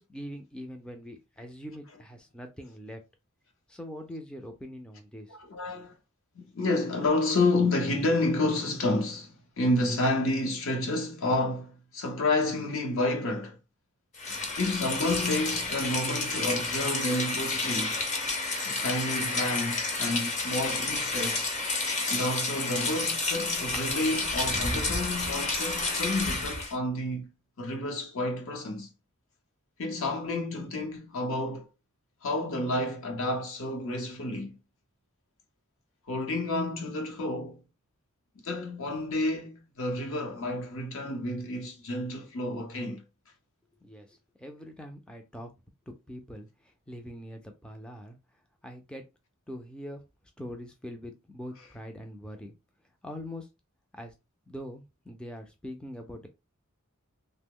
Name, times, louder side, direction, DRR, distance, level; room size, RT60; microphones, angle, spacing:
voice 1, 0.0-3.0 3.7-5.4 43.8-45.5 45.9-48.2 48.6-49.0 49.5-50.0 50.4-52.5 53.0-53.5 53.9-54.1 54.5-56.3, equal, 5° left, 0.3 m, -43 dB
voice 2, 5.3-5.9 6.3-13.6 14.3-18.0 18.6-21.6 22.1-27.3 27.6-28.9 29.8-31.7 32.2-34.6 36.1-37.6 38.4-43.0, left 2 dB, 65° left, 0.8 m, -30 dB
Rain, 14.1-26.7, left 3 dB, 35° left, 0.7 m, -30 dB
2.9 x 2.0 x 3.6 m
head